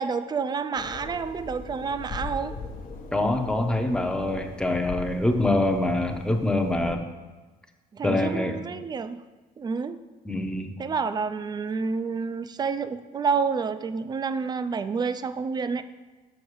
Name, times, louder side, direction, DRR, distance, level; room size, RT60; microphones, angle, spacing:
voice 1, 0.0-2.5 7.9-9.2 9.6-10.0 10.8-15.8, right 5 dB, 25° right, 12 dB, 0.4 m, -29 dB
sound 1, 0.7-7.0, left 3 dB, 60° left, 1.0 m, -40 dB
voice 2, 3.1-7.1 8.0-8.6 10.2-10.7, left 2 dB, 5° left, 5 dB, 0.7 m, -25 dB
6.5 x 6.3 x 4.6 m, 1.3 s
cardioid pair, 110°, 17 cm